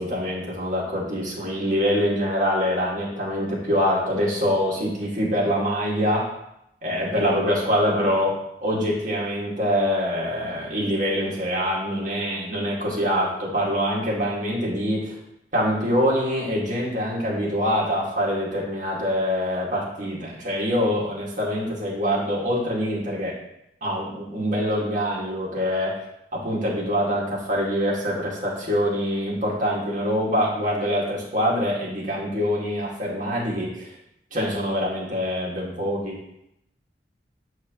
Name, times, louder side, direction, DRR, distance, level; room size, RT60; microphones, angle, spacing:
voice 1, 0.0-6.3 6.8-15.2 15.5-23.4 23.8-25.9 26.3-33.9 34.3-36.2, equal, 50° right, -5 dB, 2.0 m, -24 dB
7.3 x 4.7 x 3.0 m, 0.79 s
head